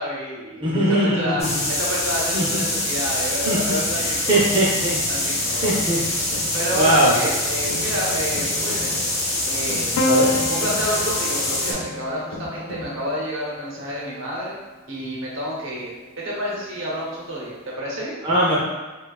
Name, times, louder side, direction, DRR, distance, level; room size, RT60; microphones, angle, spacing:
voice 1, 0.0-4.6 5.1-5.8 6.5-8.9 9.4-10.0 10.5-14.5 14.9-15.9 16.2-18.2, equal, 70° right, -5 dB, 0.8 m, -29 dB
voice 2, 0.6-1.6 2.3-2.6 3.5-5.0 5.3-6.0 6.4-7.1 10.1-10.3 18.2-18.6, right 1 dB, 25° right, -7 dB, 0.4 m, -21 dB
sound 1, 1.4-11.7, left 1 dB, 30° left, 0.5 m, -25 dB
sound 2, 5.4-13.4, left 1 dB, 65° left, 0.8 m, -38 dB
Piano, 10.0-14.4 15.6-16.3, left 3 dB, 80° left, 0.3 m, -29 dB
2.9 x 2.2 x 2.3 m, 1.2 s
head